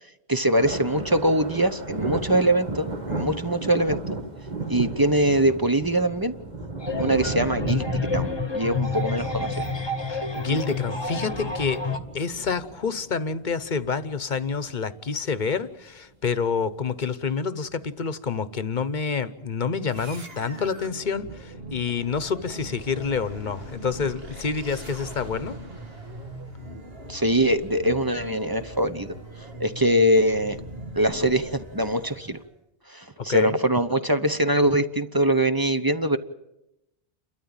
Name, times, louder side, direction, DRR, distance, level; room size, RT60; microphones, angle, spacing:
voice 1, 0.3-4.0 4.7-6.3 7.0-9.6 27.1-29.1 29.6-30.6 30.9-32.4 32.9-36.2, right 1 dB, 25° right, 9 dB, 0.8 m, -23 dB
sound 1, 0.5-14.7 15.2-15.5 16.4-16.6 17.4-17.5 19.0-19.1, right 2 dB, 45° right, 1.8 m, -34 dB
sound 2, 6.8-12.0, left 3 dB, 25° left, 1.2 m, -29 dB
voice 2, 10.1-11.8 12.1-25.6 33.2-33.6, left 5 dB, 50° left, 14 dB, 1.0 m, -28 dB
sound 3, 19.9-32.5, right 1 dB, 70° right, 2.0 m, -41 dB
29.0 x 13.0 x 8.9 m, 0.91 s
omnidirectional pair, 1.1 m